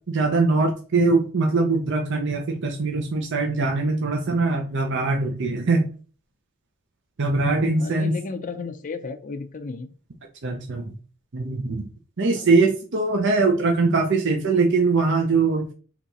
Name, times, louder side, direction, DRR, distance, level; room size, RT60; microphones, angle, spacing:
voice 1, 0.1-5.9 7.2-8.2 10.4-10.9 11.3-11.8 12.2-15.7, right 3 dB, 55° right, 2 dB, 0.6 m, -22 dB
voice 2, 7.7-9.9 12.4-12.5, left 4 dB, 40° left, 6 dB, 0.5 m, -33 dB
4.0 x 3.0 x 4.0 m, 0.39 s
head